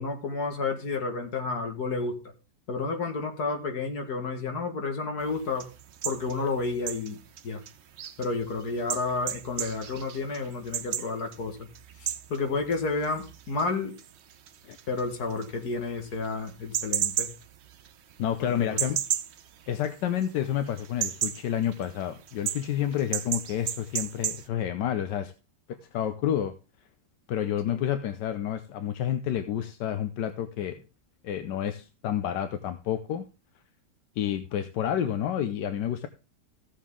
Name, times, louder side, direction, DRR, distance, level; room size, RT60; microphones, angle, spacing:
voice 1, 0.0-2.2 2.7-5.7 6.0-7.6 8.2-11.7 12.0-13.9 14.9-17.3 18.4-18.8 27.7-27.8, left 3 dB, 65° left, 4 dB, 2.2 m, -31 dB
sound 1, 5.2-20.4 20.7-24.5, right 10 dB, 60° right, 0.7 m, -35 dB
voice 2, 18.2-19.0 19.7-25.3 25.7-26.5 27.3-30.8 31.2-33.2 34.2-36.1, left 10 dB, 85° left, 10 dB, 1.3 m, -29 dB
15.0 x 7.3 x 3.6 m, 0.31 s
omnidirectional pair, 1.8 m